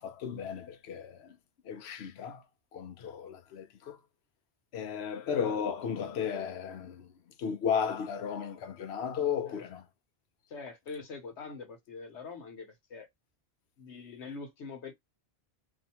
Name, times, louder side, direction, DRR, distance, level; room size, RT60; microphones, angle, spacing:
voice 1, 0.0-1.4 1.6-2.4 2.7-4.0 4.7-9.9, left 7 dB, 75° left, 0.9 m, -34 dB
voice 2, 10.5-13.1 13.8-14.9, left 4 dB, 90° left, 1.2 m, -44 dB
2.7 x 2.4 x 4.1 m
omnidirectional pair, 1.1 m